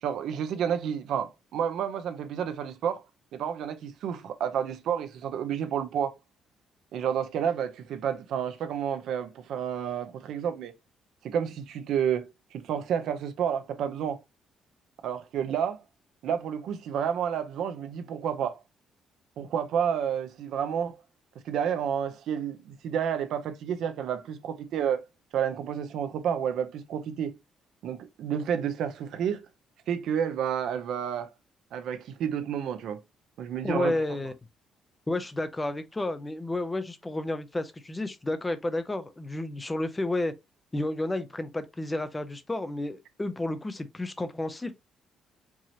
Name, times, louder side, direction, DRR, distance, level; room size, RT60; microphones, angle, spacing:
voice 1, 0.0-3.0 3.3-6.1 6.9-10.7 11.2-14.2 15.0-15.8 16.2-18.6 19.4-21.0 21.4-25.0 25.3-27.4 27.8-29.4 29.9-31.3 31.7-33.0 33.4-34.0, right 8 dB, 65° right, 0.6 m, -30 dB
voice 2, 33.6-34.3 35.1-40.3 40.7-44.7, left 2 dB, 10° left, 0.5 m, -31 dB
4.7 x 2.8 x 2.8 m
cardioid pair, 180°, 0 cm